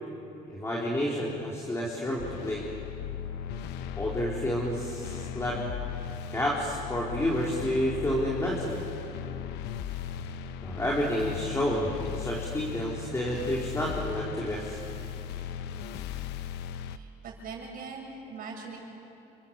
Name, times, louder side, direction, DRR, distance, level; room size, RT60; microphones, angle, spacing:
voice 1, 0.5-2.7 3.9-5.6 6.3-8.8 10.6-14.8, equal, 15° left, -4 dB, 4.1 m, -30 dB
sound 1, 2.2-17.0, left 8 dB, 90° left, 0.9 m, -37 dB
voice 2, 16.9-18.8, right 4 dB, 60° right, 0 dB, 7.4 m, -41 dB
30.0 x 25.5 x 7.2 m, 2.9 s
cardioid pair, 110°, 17 cm